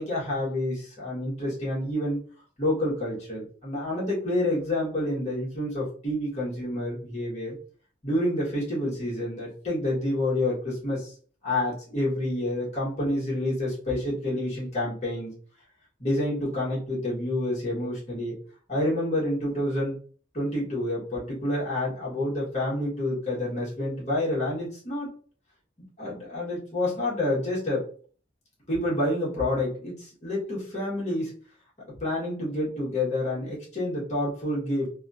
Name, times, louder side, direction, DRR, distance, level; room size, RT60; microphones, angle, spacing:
voice 1, 0.0-2.2 2.6-7.6 8.0-11.1 11.4-15.3 16.0-18.4 18.7-20.0 20.3-25.1 26.0-27.8 28.7-31.3 31.9-34.9, left 1 dB, 40° left, -7 dB, 1.5 m, -28 dB
3.4 x 2.4 x 2.6 m, 0.44 s
head